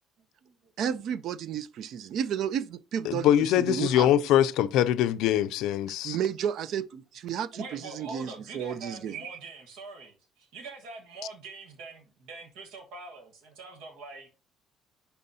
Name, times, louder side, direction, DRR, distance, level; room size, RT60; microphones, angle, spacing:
voice 1, 0.8-4.1 6.0-9.4, right 9 dB, 55° right, 0.4 m, -32 dB
voice 2, 3.0-6.2, left 11 dB, 75° left, 0.4 m, -23 dB
voice 3, 7.5-14.3, right 3 dB, 90° right, 1.4 m, -44 dB
11.0 x 4.2 x 2.7 m
cardioid pair, 160°, 0 cm